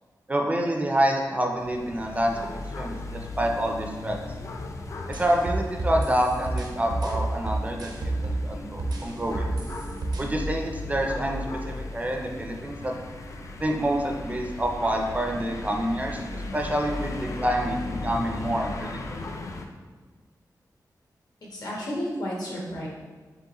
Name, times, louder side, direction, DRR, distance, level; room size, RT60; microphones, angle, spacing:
voice 1, 0.3-2.4 2.8-4.2 5.1-9.5 10.2-12.9 13.6-19.0 19.2-19.3, right 1 dB, 20° right, 1 dB, 0.4 m, -27 dB
sound 1, 1.5-19.7, left 2 dB, 45° left, 0.4 m, -36 dB
sound 2, 5.1-8.5 8.8-10.2, right 2 dB, 80° right, 0.6 m, -29 dB
voice 2, 21.5-22.9, equal, 65° left, -4 dB, 1.1 m, -32 dB
4.6 x 3.2 x 2.9 m, 1.4 s
wide cardioid pair, 155°, 7 cm